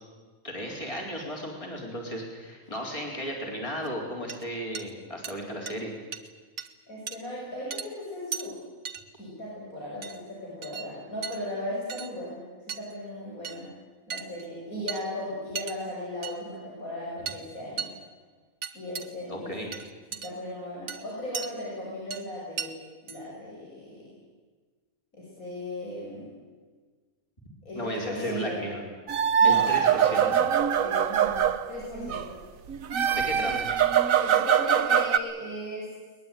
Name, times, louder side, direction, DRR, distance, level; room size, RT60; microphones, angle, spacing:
voice 1, 0.4-5.9 19.3-19.7 27.8-28.8 29.4-30.5 33.1-33.7, equal, 25° left, 0 dB, 4.3 m, -35 dB
sound 1, 3.8-3.9 4.3-4.4 4.7-4.9 5.2-5.3 5.7-5.8 6.1-6.3 6.6-6.7 7.1-7.2 7.7-7.8 8.3-8.5 8.8-9.0 10.0-10.2 10.6-10.9 11.2-11.4 11.9-12.1 12.7-12.9 13.4-13.6 14.1-14.5 14.9-15.1 15.5-15.8 16.2-16.4 17.3-17.4 17.8-18.0 18.6-19.1 19.7-20.3 20.9-21.5 22.1-22.2 22.6-22.7 23.1-23.2, right 6 dB, 60° right, 1.6 m, -36 dB
voice 2, 6.9-8.6 9.2-12.4 12.8-13.7 14.1-17.9 18.7-19.5 20.2-24.1 25.1-26.3 27.6-28.6 29.4-29.7 30.8-31.4 31.7-32.4 33.3-33.5 34.2-35.9, left 1 dB, 85° left, -6 dB, 6.9 m, -37 dB
sound 2, 29.1-32.3 32.7-35.2, right 8 dB, 75° right, 1.4 m, -23 dB
22.0 x 20.5 x 9.2 m, 1.4 s
omnidirectional pair, 1.4 m